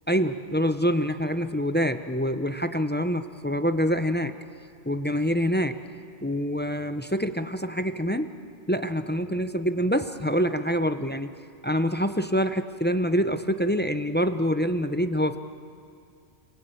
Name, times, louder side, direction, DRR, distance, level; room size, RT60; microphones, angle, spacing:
voice 1, 0.1-4.3 4.8-5.8 6.2-8.4 8.7-11.3 11.6-15.4, equal, 10° left, 9 dB, 0.6 m, -26 dB
29.0 x 21.0 x 9.1 m, 2.4 s
omnidirectional pair, 1.2 m